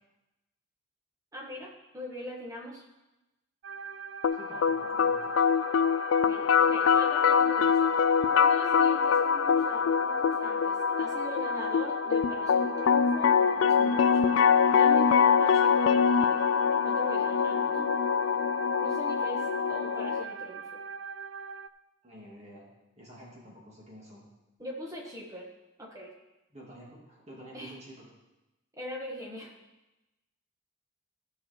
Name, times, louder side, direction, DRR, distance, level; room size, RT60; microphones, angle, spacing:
voice 1, 1.3-2.8 6.2-7.9 8.3-14.3 14.7-16.4 16.8-18.1 18.8-20.8 24.6-25.5 25.8-26.1 27.5-27.8 28.7-29.5, equal, 15° right, -1 dB, 1.5 m, -41 dB
sound 1, 3.6-21.7, right 5 dB, 60° right, 0.4 m, -41 dB
sound 2, 4.2-20.2, left 6 dB, 75° left, 0.3 m, -24 dB
voice 2, 4.4-5.4 22.0-22.7 23.0-24.3 26.5-28.1, equal, 30° right, -5 dB, 2.4 m, -49 dB
13.5 x 6.1 x 4.4 m, 1.0 s
head